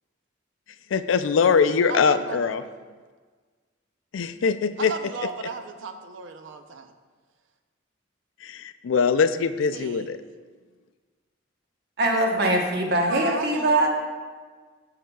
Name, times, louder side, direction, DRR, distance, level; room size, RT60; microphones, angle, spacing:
voice 1, 0.9-2.6 4.1-4.9 8.4-10.2, left 5 dB, 85° left, 12 dB, 0.4 m, -22 dB
voice 2, 1.9-2.7 4.8-6.9 9.7-10.2 13.1-13.9, right 4 dB, 75° right, 7 dB, 0.6 m, -35 dB
voice 3, 12.0-13.9, right 1 dB, 55° right, 1 dB, 1.0 m, -22 dB
13.5 x 5.7 x 2.3 m, 1.5 s
head